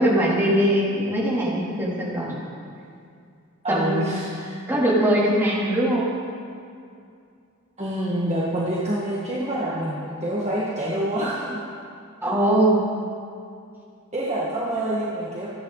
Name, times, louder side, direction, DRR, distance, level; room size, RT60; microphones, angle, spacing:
voice 1, 0.0-2.4 3.7-4.0 4.7-6.0 12.2-12.8, right 1 dB, 10° right, -6 dB, 3.4 m, -21 dB
voice 2, 3.6-4.5 7.8-11.6 14.1-15.5, right 1 dB, 30° right, -7 dB, 2.0 m, -26 dB
26.5 x 10.5 x 4.2 m, 2.4 s
head